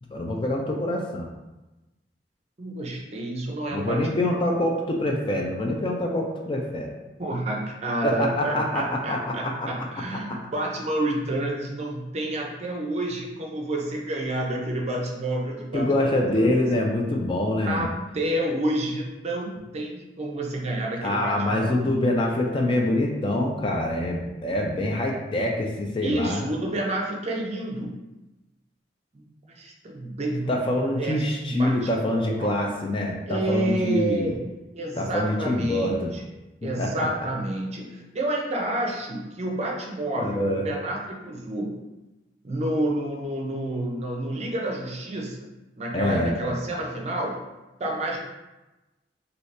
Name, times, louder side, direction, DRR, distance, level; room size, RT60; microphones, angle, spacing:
voice 1, 0.0-1.3 3.7-6.9 8.0-9.2 9.6-9.7 15.7-17.9 21.0-26.4 30.5-34.3 35.0-36.1 36.8-37.1 40.1-40.6 45.9-46.5, left 1 dB, 30° left, 0 dB, 0.4 m, -25 dB
voice 2, 2.6-4.4 7.2-16.5 17.6-21.9 26.0-28.0 29.1-30.5 31.0-32.7 33.3-34.4 34.7-36.2 36.6-41.8 42.4-45.5 45.8-47.4 47.8-48.2, right 1 dB, 35° right, -1 dB, 0.5 m, -29 dB
2.7 x 2.7 x 3.2 m, 1.1 s
head